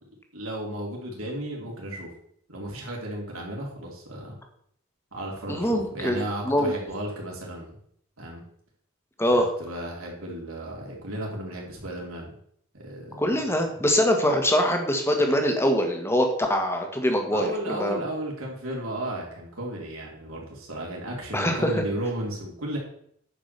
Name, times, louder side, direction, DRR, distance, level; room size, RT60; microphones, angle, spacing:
voice 1, 0.3-2.1 2.5-4.4 5.1-7.8 8.2-8.4 9.3-12.4 12.7-13.2 13.8-13.9 17.3-22.8, right 1 dB, 80° right, -2 dB, 3.7 m, -34 dB
voice 2, 5.5-6.7 9.2-9.5 13.2-18.0 21.3-21.8, equal, 10° left, 4 dB, 1.6 m, -23 dB
9.8 x 5.1 x 6.8 m, 0.66 s
head